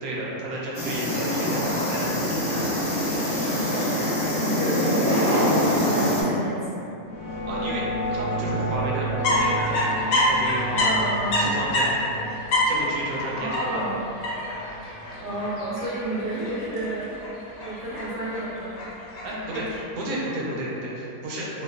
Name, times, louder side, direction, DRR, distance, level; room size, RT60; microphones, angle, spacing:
voice 1, 0.0-3.0 7.5-7.8 8.1-10.9 11.4-12.1 12.6-13.9 19.2-21.6, right 1 dB, 80° right, -5 dB, 1.0 m, -32 dB
sound 1, 0.7-6.2, left 1 dB, 25° left, 0.9 m, -24 dB
voice 2, 4.4-7.0 10.8-11.5 13.4-13.9 15.2-17.2 17.6-18.8, right 1 dB, 25° right, -11 dB, 0.4 m, -31 dB
sound 2, 7.0-15.7, right 1 dB, 50° left, 0.3 m, -32 dB
sound 3, 9.2-19.8, left 1 dB, 70° left, 0.9 m, -27 dB
2.9 x 2.1 x 2.3 m, 2.7 s
omnidirectional pair, 1.5 m